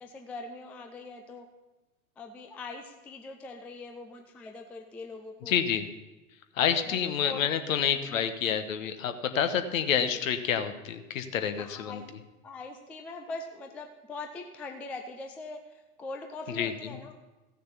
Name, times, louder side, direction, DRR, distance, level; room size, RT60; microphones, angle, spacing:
voice 1, 0.0-1.5 2.2-5.6 6.9-7.5 8.1-8.3 10.1-10.2 11.6-12.1 12.4-17.1, left 3 dB, 5° left, 4 dB, 0.3 m, -42 dB
voice 2, 5.5-5.8 6.6-12.0 16.6-16.7, left 8 dB, 60° left, 9 dB, 1.2 m, -28 dB
15.0 x 6.6 x 5.7 m, 1.1 s
figure-of-eight pair, 95°, 45 cm